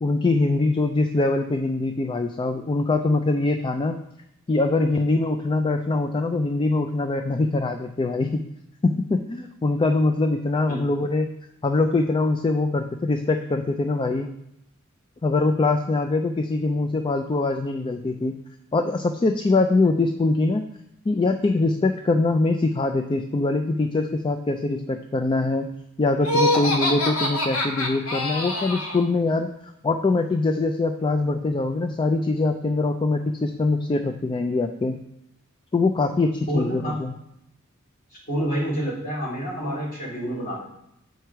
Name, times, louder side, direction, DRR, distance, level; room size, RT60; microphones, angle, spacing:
voice 1, 0.0-4.0 4.5-8.4 8.8-11.3 11.6-14.3 15.2-18.4 18.7-20.6 21.1-25.7 26.0-29.5 29.8-35.0 35.7-37.1, left 3 dB, 25° left, 6 dB, 0.3 m, -23 dB
Laughter, 26.2-29.0, left 1 dB, 80° left, 1.2 m, -24 dB
voice 2, 36.5-37.0 38.3-40.7, equal, 45° left, -4 dB, 2.6 m, -28 dB
6.6 x 4.7 x 4.6 m, 0.79 s
head